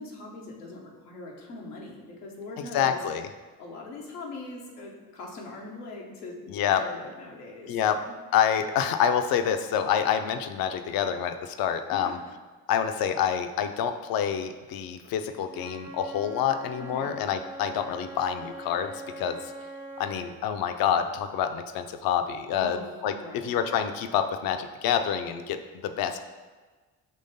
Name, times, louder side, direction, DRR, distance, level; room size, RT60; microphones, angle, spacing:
voice 1, 0.0-3.0 3.6-8.1 11.9-12.3 16.8-17.1 22.5-23.5, left 2 dB, 90° left, -1 dB, 0.7 m, -41 dB
voice 2, 2.7-3.3 6.5-6.8 7.7-8.0 8.3-12.2 12.7-18.9 19.2-19.4 20.0-22.8 23.0-25.6 25.8-26.2, left 8 dB, 55° left, 8 dB, 0.5 m, -27 dB
Wind instrument woodwind instrument, 15.4-20.3, right 1 dB, 60° right, 1.1 m, -42 dB
5.5 x 3.1 x 2.6 m, 1.4 s
hypercardioid pair, 45°, 44 cm